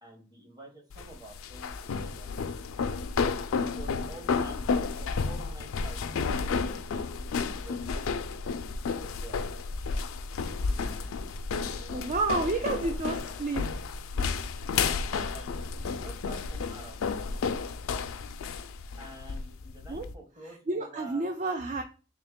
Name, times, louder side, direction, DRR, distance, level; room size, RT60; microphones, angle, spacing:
voice 1, 0.0-3.1 3.6-8.3 8.9-9.4 11.6-13.0 14.6-17.4 19.0-21.3, right 1 dB, 20° right, 2 dB, 0.9 m, -49 dB
sound 1, 0.9-20.1, left 5 dB, 85° left, 0.4 m, -32 dB
voice 2, 11.9-13.7 19.9-20.1 20.7-21.8, right 3 dB, 35° right, 6 dB, 0.3 m, -30 dB
3.5 x 2.8 x 3.6 m, 0.36 s
head